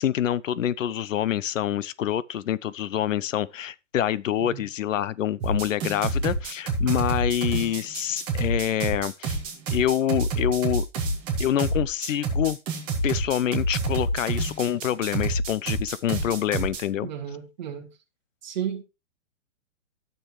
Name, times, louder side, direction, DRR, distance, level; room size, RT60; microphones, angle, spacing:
voice 1, 0.0-9.4 9.7-10.8 11.4-12.6 13.0-17.1, left 11 dB, 80° left, 0.7 m, -26 dB
sound 1, 5.4-16.8, right 2 dB, 15° right, 1.5 m, -27 dB
voice 2, 17.0-17.9 18.4-18.8, right 9 dB, 35° right, 2.1 m, -33 dB
13.5 x 6.9 x 3.1 m
hypercardioid pair, 175°, 38 cm